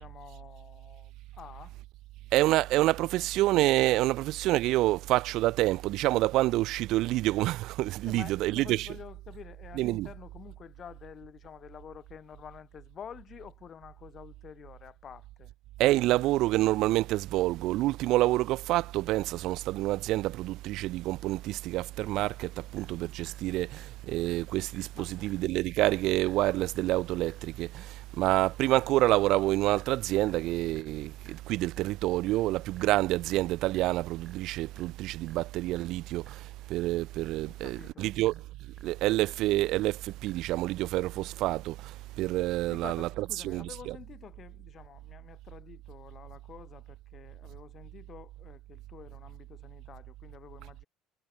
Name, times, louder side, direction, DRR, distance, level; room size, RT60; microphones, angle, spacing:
voice 1, 0.0-1.8 8.0-15.5 24.9-25.5 37.4-38.1 42.7-50.9, left 8 dB, 35° left, 1.8 m, -49 dB
voice 2, 2.3-8.9 9.8-10.1 15.8-38.3 38.8-43.1 43.4-44.0, right 17 dB, 65° right, 0.3 m, -28 dB
sound 1, 22.8-40.7, right 4 dB, 15° right, 1.5 m, -60 dB
cardioid pair, 135°, 0 cm